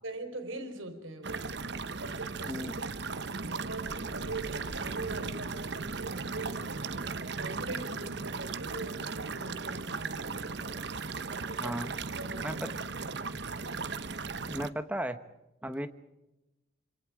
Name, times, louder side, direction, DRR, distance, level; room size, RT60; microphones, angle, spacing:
voice 1, 0.0-1.5 2.0-2.7 3.0-7.1 7.4-10.8 11.5-11.8 12.1-12.6, right 2 dB, 80° right, 4.2 m, -42 dB
sound 1, 1.2-14.7, right 4 dB, 55° right, 0.9 m, -37 dB
voice 2, 2.5-2.8 11.6-11.9 12.4-12.6 14.5-15.2 15.6-15.9, right 1 dB, 5° right, 1.1 m, -35 dB
26.5 x 26.5 x 5.0 m
head